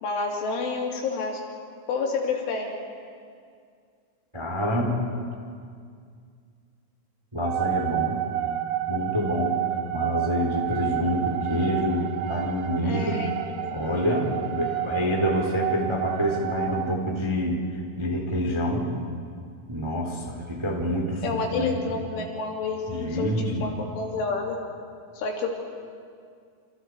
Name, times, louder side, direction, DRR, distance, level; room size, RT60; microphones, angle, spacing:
voice 1, 0.0-1.4 1.9-2.8 12.8-13.3 13.6-13.7 21.2-24.6 25.1-25.5, left 4 dB, 70° left, 0 dB, 5.1 m, -29 dB
voice 2, 4.3-5.0 7.3-8.2 8.9-9.6 9.9-13.2 13.7-17.6 18.0-18.9 19.7-21.7 22.9-23.7, equal, 10° right, 0 dB, 2.0 m, -27 dB
sound 1, 7.4-17.0, right 13 dB, 75° right, 2.2 m, -30 dB
28.5 x 28.5 x 4.7 m, 2.2 s
omnidirectional pair, 5.8 m